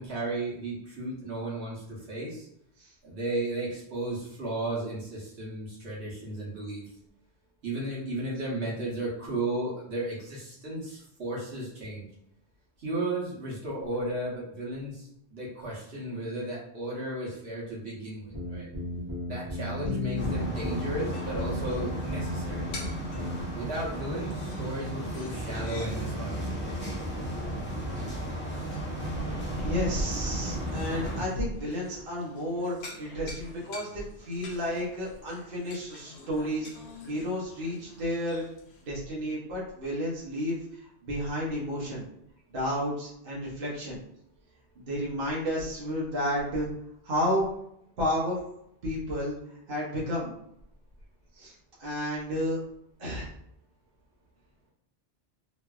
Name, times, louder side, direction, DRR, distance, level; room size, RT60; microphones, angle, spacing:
voice 1, 0.0-2.5 3.0-6.9 7.6-12.1 12.8-18.7 19.3-22.7 23.5-26.5, right 2 dB, 75° right, -6 dB, 1.2 m, -34 dB
sound 1, 18.2-22.9 23.2-23.4, left 2 dB, 20° right, 0.9 m, -33 dB
sound 2, 20.2-31.2, right 1 dB, 15° left, 0.6 m, -34 dB
sound 3, 20.8-38.9, left 2 dB, 80° left, 0.9 m, -49 dB
voice 2, 29.6-36.7 37.1-38.4 38.9-42.1 42.5-44.0 44.8-46.7 47.0-47.4 48.0-48.4 48.8-49.3 49.7-50.3 51.4-51.5 51.8-52.6 53.0-53.3, equal, 60° right, -6 dB, 1.0 m, -31 dB
3.1 x 2.5 x 2.3 m, 0.76 s
omnidirectional pair, 1.1 m